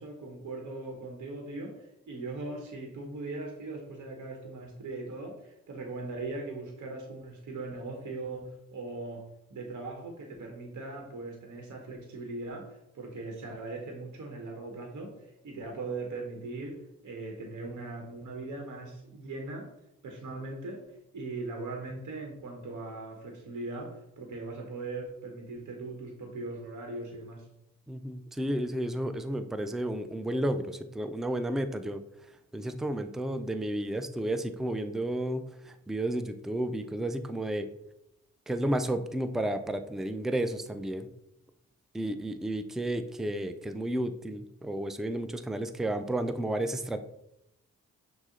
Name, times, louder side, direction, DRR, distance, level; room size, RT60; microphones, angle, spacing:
voice 1, 0.0-19.7 20.0-27.5, right 3 dB, 60° right, 2 dB, 0.9 m, -40 dB
voice 2, 27.9-32.0 32.5-37.7 38.5-41.1 41.9-47.0, right 1 dB, ahead, 9 dB, 0.4 m, -32 dB
6.1 x 2.1 x 3.8 m, 0.82 s
supercardioid pair, 45°, 33 cm